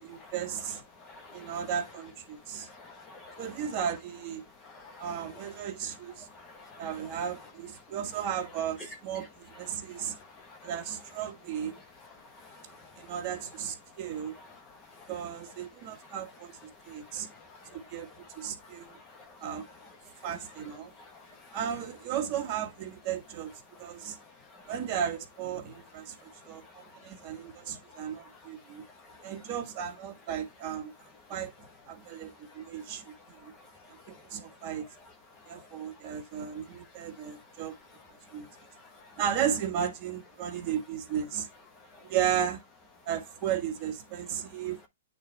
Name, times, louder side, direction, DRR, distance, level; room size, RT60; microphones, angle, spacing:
voice 1, 0.0-0.8 1.3-2.7 3.4-4.4 5.0-6.3 6.8-10.2 10.6-11.8 13.0-14.4 15.1-16.5 16.9-17.3 17.7-18.1 18.3-19.0 19.4-19.7 20.2-20.9 21.5-23.5 23.8-24.2 24.7-28.8 29.2-30.9 31.3-33.1 33.4-33.5 34.1-34.8 35.5-37.8 38.2-38.5 39.1-41.5 42.0-42.6 43.0-44.8, right 9 dB, 30° right, 1.7 m, -35 dB
voice 2, 0.7-1.7 2.3-3.8 4.4-5.6 6.2-7.2 7.8-8.0 9.5-10.8 11.7-13.1 13.8-15.1 15.6-16.2 16.7-21.6 23.6-24.7 26.1-29.3 31.2-31.3 32.0-34.7 35.3-39.2 40.5-40.6 41.7-42.1 44.4-44.7, left 3 dB, 20° left, 1.0 m, -53 dB
8.6 x 4.0 x 3.3 m
hypercardioid pair, 155°, 0 cm